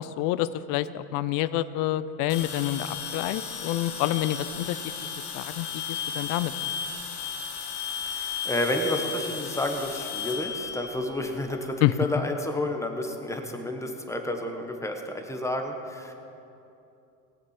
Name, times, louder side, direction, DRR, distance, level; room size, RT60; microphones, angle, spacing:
voice 1, 0.0-4.8 5.3-6.5 11.8-11.9, left 14 dB, 45° left, 15 dB, 0.5 m, -28 dB
sound 1, 2.3-11.5, left 7 dB, 80° left, 2.1 m, -35 dB
voice 2, 8.1-16.1, left 1 dB, 5° left, 4 dB, 1.2 m, -30 dB
19.0 x 7.8 x 5.9 m, 2.8 s
supercardioid pair, 115°, 45 cm